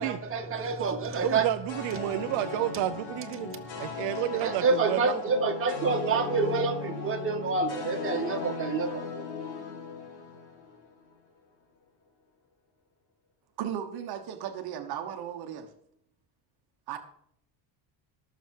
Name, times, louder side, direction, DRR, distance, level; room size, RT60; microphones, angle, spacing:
voice 1, 0.0-1.5 4.4-9.2, right 4 dB, 30° right, 1 dB, 2.2 m, -28 dB
voice 2, 1.2-5.2, right 15 dB, 70° right, 9 dB, 0.8 m, -31 dB
sound 1, 1.7-11.0, left 5 dB, 55° left, 3.6 m, -38 dB
voice 3, 13.6-15.7 16.9-17.0, right 9 dB, 55° right, 6 dB, 1.4 m, -36 dB
18.5 x 7.2 x 4.7 m, 0.72 s
cardioid pair, 130°, 45 cm